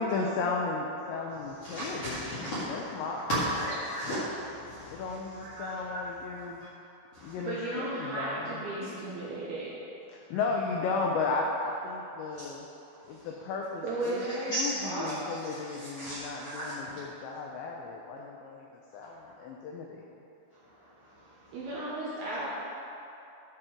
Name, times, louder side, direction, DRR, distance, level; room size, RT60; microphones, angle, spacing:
voice 1, 0.0-3.8 4.9-6.7 7.2-8.6 10.1-12.7 13.1-14.2 14.5-18.7 18.9-20.0, left 4 dB, 85° left, 0 dB, 2.5 m, -34 dB
voice 2, 1.6-2.7 3.3-5.0 5.5-6.0 7.1-7.3 12.4-12.5 14.5-14.7 15.8-16.7, right 1 dB, 60° left, -12 dB, 1.7 m, -34 dB
voice 3, 7.4-9.7 10.3-10.4 13.8-15.2 21.5-22.5, right 2 dB, 70° right, -8 dB, 2.6 m, -35 dB
13.5 x 4.5 x 5.0 m, 2.8 s
omnidirectional pair, 5.9 m